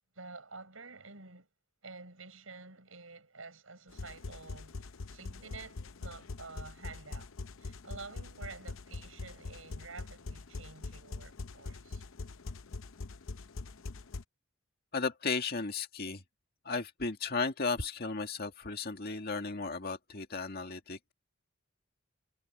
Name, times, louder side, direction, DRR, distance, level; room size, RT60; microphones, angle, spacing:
voice 1, 0.1-1.5 1.8-7.3 7.6-12.0, right 4 dB, 80° right, 6.9 m, -49 dB
sound 1, 3.9-14.2, left 3 dB, 70° left, 0.7 m, -43 dB
voice 2, 14.9-16.2 16.6-21.1, left 4 dB, 50° left, 2.0 m, -35 dB
head